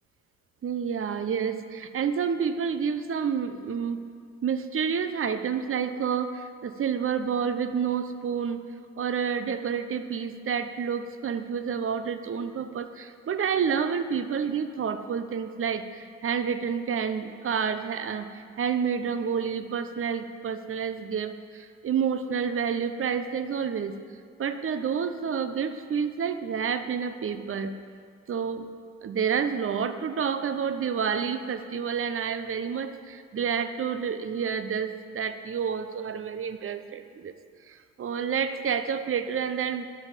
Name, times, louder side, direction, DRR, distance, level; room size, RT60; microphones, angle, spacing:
voice 1, 0.6-4.1 4.4-24.0 24.4-27.8 28.3-28.7 29.0-37.3 37.7-39.9, right 7 dB, 40° right, 10 dB, 0.9 m, -29 dB
12.5 x 11.0 x 5.2 m, 2.2 s
hypercardioid pair, 55°, 35 cm